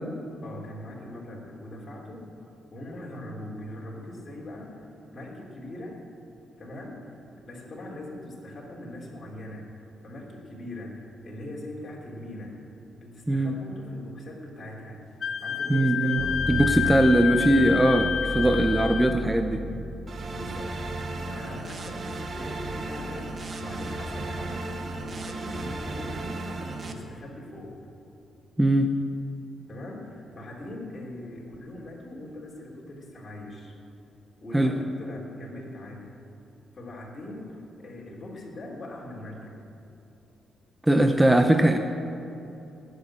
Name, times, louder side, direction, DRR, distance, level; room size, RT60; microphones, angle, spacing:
voice 1, 0.4-2.3 2.7-6.0 6.6-12.6 13.0-15.0 15.4-17.7 20.3-20.8 21.2-24.6 25.0-27.8 29.7-33.7 34.4-36.2 36.7-39.6, left 1 dB, 35° left, -3 dB, 3.2 m, -41 dB
Wind instrument woodwind instrument, 15.2-19.2, left 8 dB, 55° left, 0.8 m, -29 dB
voice 2, 15.7-16.2 16.5-19.7 28.6-28.9 34.5-34.7 40.8-41.8, right 1 dB, 10° right, 6 dB, 0.8 m, -21 dB
sound 1, 16.2-24.0 24.5-25.3, equal, 15° left, 1.2 m, -36 dB
sound 2, 20.1-26.9, right 2 dB, 50° right, 1.3 m, -35 dB
18.5 x 6.5 x 8.7 m, 3.0 s
cardioid pair, 80°, 0 cm